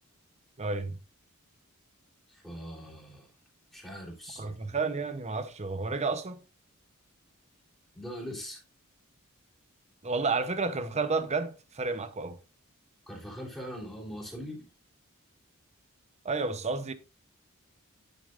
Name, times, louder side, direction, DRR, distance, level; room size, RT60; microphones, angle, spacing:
voice 1, 0.6-1.0 4.4-6.4 10.0-12.4 16.2-16.9, right 4 dB, 30° right, 0.9 m, -31 dB
voice 2, 2.3-3.3 3.7-4.6 7.9-8.6 13.1-14.7, equal, ahead, 3.6 m, -41 dB
10.5 x 7.2 x 2.6 m
head